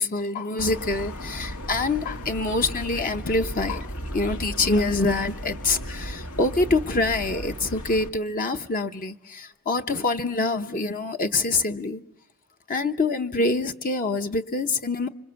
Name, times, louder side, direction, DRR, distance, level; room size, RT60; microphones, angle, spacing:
voice 1, 0.0-12.0 12.7-15.1, left 3 dB, 40° left, 0.9 m, -25 dB
sound 1, 0.6-8.1, equal, 85° left, 1.9 m, -35 dB
26.5 x 26.0 x 6.9 m
head